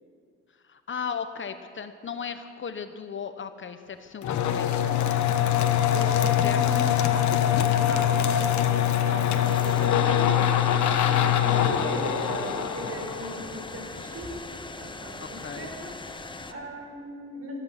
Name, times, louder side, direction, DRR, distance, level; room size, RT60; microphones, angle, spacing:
voice 1, 0.6-5.0 6.4-6.6 15.2-15.7, left 6 dB, 40° left, 9 dB, 1.0 m, -36 dB
sound 1, 4.2-13.8, left 10 dB, 75° left, 1.2 m, -23 dB
voice 2, 5.9-14.3 14.7-17.6, right 1 dB, 55° right, 1 dB, 4.5 m, -38 dB
sound 2, 9.4-16.5, left 3 dB, 15° left, 1.0 m, -40 dB
14.0 x 12.5 x 7.4 m, 2.3 s
cardioid pair, 90°, 30 cm